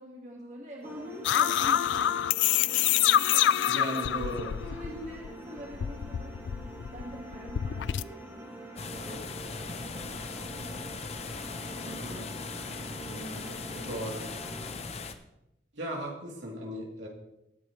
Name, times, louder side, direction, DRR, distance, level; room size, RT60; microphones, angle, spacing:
voice 1, 0.0-2.1 3.1-4.2 4.6-6.3 6.9-10.1 11.3-12.4 13.1-14.0, equal, 40° right, -1 dB, 1.9 m, -45 dB
sound 1, 0.8-14.7, right 1 dB, 15° right, 2.8 m, -45 dB
sound 2, 1.2-5.3 5.6-8.0, left 11 dB, 80° left, 0.3 m, -26 dB
voice 2, 3.7-4.5 11.8-12.2 13.9-14.2 15.7-17.1, right 1 dB, 85° right, -2 dB, 3.2 m, -36 dB
sound 3, 8.8-15.1, left 4 dB, 35° left, 0.7 m, -39 dB
19.5 x 8.6 x 3.2 m, 0.86 s
head